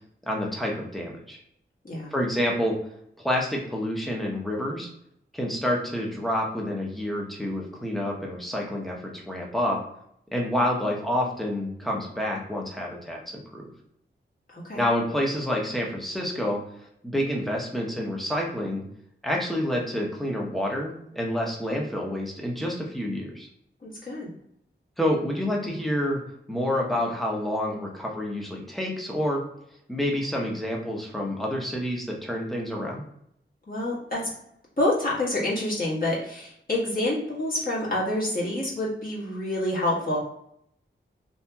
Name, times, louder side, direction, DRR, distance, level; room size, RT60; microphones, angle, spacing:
voice 1, 0.2-1.4 2.1-2.8 3.2-4.9 5.3-9.8 10.3-13.7 14.7-16.6 17.0-18.8 19.2-23.5 25.0-26.2 26.5-29.4 29.9-33.0, left 1 dB, ahead, -1 dB, 0.7 m, -28 dB
voice 2, 23.8-24.3 33.7-34.2 34.8-40.2, left 1 dB, 45° left, -6 dB, 1.3 m, -27 dB
2.7 x 2.7 x 2.3 m, 0.73 s
wide cardioid pair, 70°, 21 cm